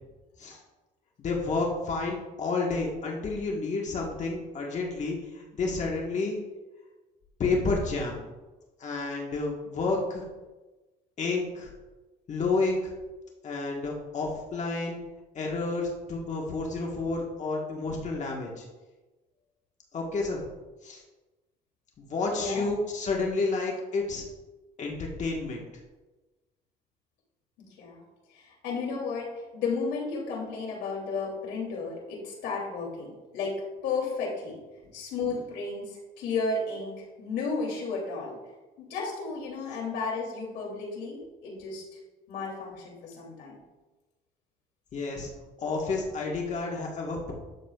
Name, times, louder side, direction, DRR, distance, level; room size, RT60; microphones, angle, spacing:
voice 1, 1.2-6.4 7.4-8.2 8.8-10.2 11.2-11.7 12.3-12.9 13.4-15.0 15.3-18.6 19.9-20.4 20.8-21.0 22.0-24.2 24.8-25.6 44.9-45.3 45.6-47.3, left 3 dB, 45° left, -1 dB, 1.5 m, -30 dB
voice 2, 22.3-22.8 27.8-28.0 28.3-34.6 34.9-38.4 38.8-41.8 42.3-43.6, left 4 dB, 85° left, -2 dB, 2.9 m, -33 dB
12.0 x 7.2 x 2.4 m, 1.2 s
cardioid pair, 110°, 17 cm